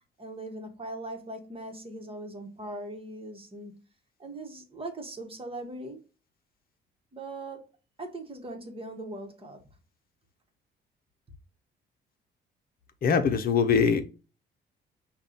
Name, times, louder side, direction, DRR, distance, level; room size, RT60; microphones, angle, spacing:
voice 1, 0.2-3.8 4.2-6.0 7.1-7.7 8.0-9.6, right 2 dB, 30° right, 1.2 m, -40 dB
voice 2, 13.0-14.0, left 6 dB, 50° left, 0.8 m, -22 dB
5.4 x 2.3 x 3.8 m
cardioid pair, 90°, 20 cm